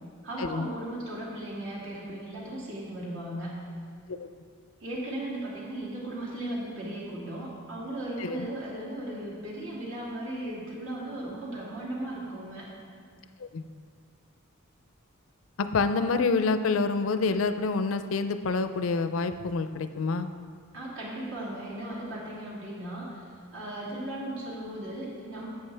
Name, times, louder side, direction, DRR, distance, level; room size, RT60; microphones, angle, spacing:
voice 1, 0.2-3.5 4.8-12.7 20.7-23.2 23.5-25.5, right 1 dB, 70° right, -5 dB, 2.4 m, -36 dB
voice 2, 15.6-20.3, left 4 dB, 70° left, 10 dB, 0.5 m, -27 dB
11.0 x 7.9 x 3.3 m, 2.1 s
head